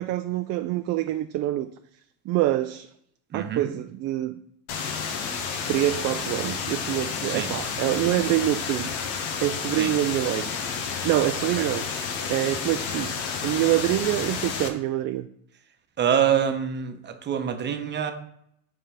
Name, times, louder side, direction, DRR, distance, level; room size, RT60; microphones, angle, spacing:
voice 1, 0.0-1.7 2.3-2.9 3.3-4.3 5.7-8.9 9.4-10.5 11.0-11.9 12.3-15.3, right 14 dB, 45° right, 8 dB, 0.4 m, -25 dB
voice 2, 3.3-3.7 7.3-7.5 9.8-9.9 11.6-11.7 16.0-18.1, right 8 dB, 30° right, 7 dB, 0.9 m, -25 dB
sound 1, 4.7-14.7, left 6 dB, 80° left, 1.1 m, -31 dB
5.3 x 3.7 x 5.6 m, 0.70 s
supercardioid pair, 110°, 35 cm